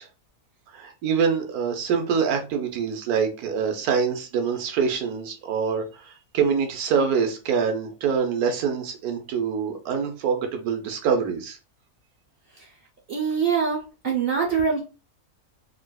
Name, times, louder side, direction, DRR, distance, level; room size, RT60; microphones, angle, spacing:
voice 1, 0.7-11.6, right 6 dB, 75° right, 4 dB, 1.2 m, -25 dB
voice 2, 13.1-14.8, right 6 dB, 55° right, -1 dB, 0.7 m, -24 dB
3.8 x 2.4 x 2.2 m, 0.32 s
omnidirectional pair, 1.6 m